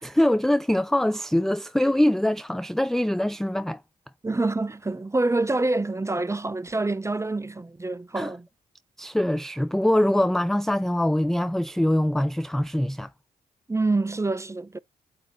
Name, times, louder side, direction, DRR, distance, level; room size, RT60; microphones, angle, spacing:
voice 1, 0.0-3.8 8.1-8.3 9.0-13.1, left 1 dB, ahead, 0.4 m, -23 dB
voice 2, 4.2-8.5 13.7-14.8, right 2 dB, 20° right, 0.8 m, -26 dB
8.6 x 2.9 x 3.7 m
supercardioid pair, 50°, 16 cm